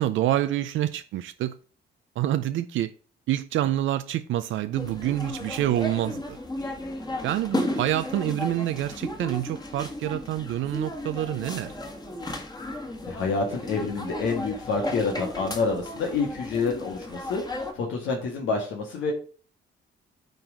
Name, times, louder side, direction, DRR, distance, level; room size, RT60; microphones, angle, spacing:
voice 1, 0.0-1.6 2.2-2.9 3.3-6.4 7.2-11.7, right 13 dB, 80° right, 0.5 m, -27 dB
sound 1, 4.7-17.7, left 1 dB, 20° left, 1.7 m, -34 dB
voice 2, 13.0-19.1, left 4 dB, 85° left, 1.9 m, -28 dB
9.1 x 4.0 x 5.1 m
cardioid pair, 90°, 20 cm